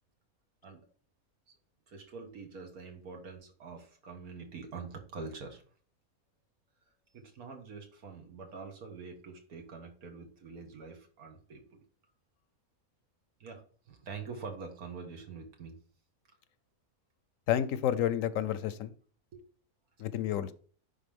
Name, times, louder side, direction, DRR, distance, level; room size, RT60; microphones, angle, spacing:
voice 1, 1.9-5.6 7.1-11.6 13.4-13.6 13.9-15.7 19.3-19.4, right 4 dB, 85° right, 1.9 m, -45 dB
voice 2, 17.5-18.9 20.0-20.5, left 10 dB, 70° left, 0.9 m, -30 dB
10.5 x 3.6 x 3.6 m
omnidirectional pair, 1.5 m